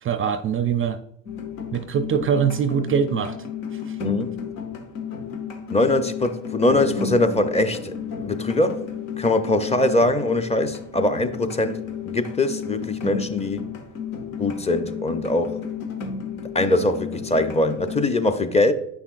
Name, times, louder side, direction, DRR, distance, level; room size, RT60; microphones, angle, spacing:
voice 1, 0.0-1.0 1.7-3.4 3.9-4.0, right 7 dB, 35° right, 0.4 m, -23 dB
sound 1, 1.3-18.1, left 6 dB, 90° left, 1.0 m, -33 dB
voice 2, 4.0-4.4 5.7-7.9 8.2-8.8 9.2-13.6 14.4-15.6 16.5-18.7, left 2 dB, 15° left, 0.6 m, -22 dB
Bass guitar, 6.7-10.6, left 6 dB, 45° left, 0.9 m, -40 dB
8.3 x 5.7 x 2.5 m
supercardioid pair, 80°, 39 cm